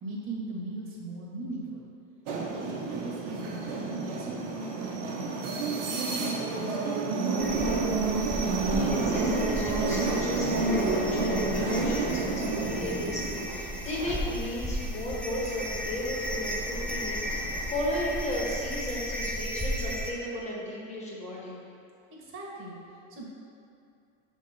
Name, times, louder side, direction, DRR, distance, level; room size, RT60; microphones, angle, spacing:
voice 1, 0.0-1.8 2.4-4.6 4.9-7.0 22.2-23.2, right 2 dB, 35° right, -4 dB, 1.5 m, -40 dB
sound 1, 2.3-15.0 15.4-18.6, right 3 dB, 75° right, 1.2 m, -30 dB
sound 2, 7.4-20.1, equal, 5° left, 0.5 m, -35 dB
voice 2, 8.2-21.5, left 1 dB, 20° left, -5 dB, 1.5 m, -35 dB
6.4 x 3.7 x 4.3 m, 2.5 s
supercardioid pair, 120°, 36 cm